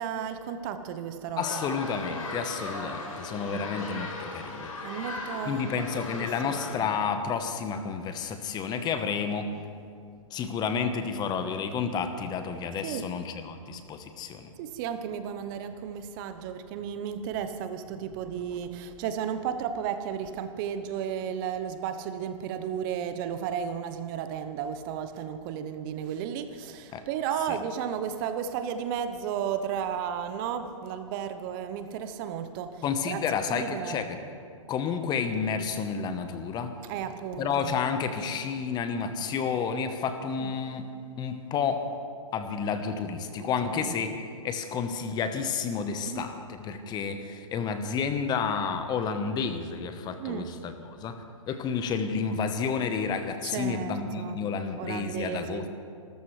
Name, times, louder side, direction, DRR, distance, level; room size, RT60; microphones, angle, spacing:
voice 1, 0.0-1.6 3.5-4.1 4.8-6.9 12.8-13.1 14.6-33.2 33.5-34.0 36.9-37.7 40.4-40.5 43.4-43.9 46.1-46.3 50.2-50.5 53.4-54.4 54.8-55.7, right 8 dB, 40° right, 10 dB, 1.0 m, -34 dB
sound 1, 1.4-6.7, left 2 dB, 80° left, 4.1 m, -38 dB
voice 2, 1.4-4.7 5.4-9.5 10.3-14.5 26.9-27.0 27.5-27.6 32.8-34.2 34.7-36.7 37.4-40.9 41.2-41.9 42.3-44.1 44.4-51.2 51.5-55.7, left 6 dB, 25° left, 8 dB, 1.1 m, -30 dB
26.5 x 14.0 x 3.3 m, 2.3 s
hypercardioid pair, 120°, 17 cm